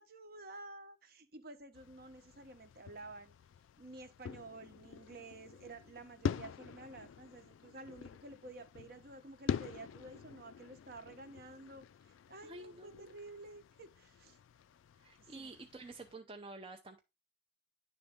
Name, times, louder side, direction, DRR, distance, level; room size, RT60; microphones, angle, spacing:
voice 1, 0.0-3.3 3.8-14.4 15.2-15.6, right 2 dB, 50° right, 0.8 m, -52 dB
sound 1, 1.7-16.2, left 7 dB, 90° left, 0.3 m, -45 dB
voice 2, 12.4-13.1 15.0-17.0, right 2 dB, 30° right, 0.5 m, -50 dB
9.9 x 3.5 x 3.5 m
head